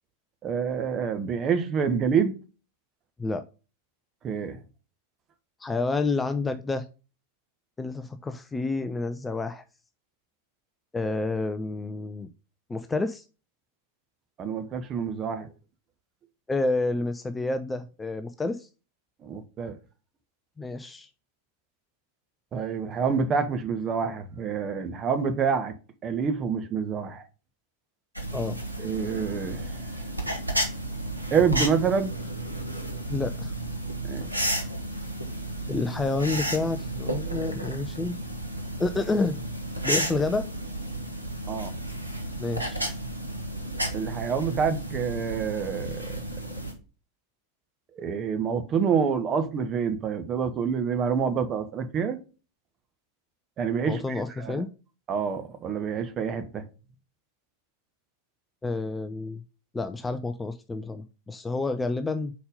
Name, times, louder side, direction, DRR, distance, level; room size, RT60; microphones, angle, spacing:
voice 1, 0.4-2.3 4.2-4.6 14.4-15.5 19.2-19.8 22.5-25.7 26.0-27.2 28.8-29.9 31.3-32.1 34.1-34.3 41.5-41.7 43.9-46.2 48.0-52.2 53.6-54.6 55.1-56.7, right 6 dB, 30° right, 1.0 m, -27 dB
voice 2, 5.6-6.8 7.8-9.6 10.9-12.3 12.7-13.2 16.5-18.7 20.6-21.1 28.3-28.6 33.1-33.5 35.7-38.2 38.8-39.4 39.8-40.5 42.4-42.9 53.9-54.7 58.6-59.4 59.7-62.3, left 3 dB, 10° left, 0.4 m, -29 dB
sound 1, 28.2-46.7, right 1 dB, 85° right, 1.2 m, -32 dB
5.2 x 4.3 x 5.2 m
figure-of-eight pair, 90°, 0 cm